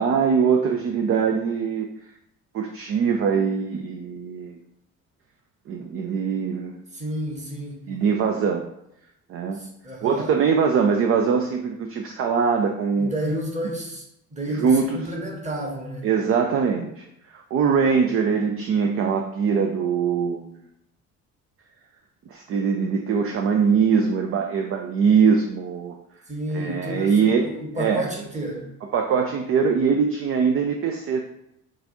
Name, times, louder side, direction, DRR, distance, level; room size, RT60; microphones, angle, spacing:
voice 1, 0.0-1.9 2.5-4.6 5.7-6.8 7.9-8.6 9.3-9.6 10.0-13.1 14.6-15.0 16.0-17.0 17.3-20.6 22.3-25.9 26.5-27.5 27.8-28.0 28.9-31.2, right 6 dB, 30° right, 3 dB, 0.4 m, -22 dB
voice 2, 6.9-7.9 9.5-10.4 13.0-16.1 26.3-28.7, right 1 dB, 15° right, -1 dB, 1.2 m, -31 dB
5.6 x 2.4 x 2.7 m, 0.80 s
figure-of-eight pair, 50°, 44 cm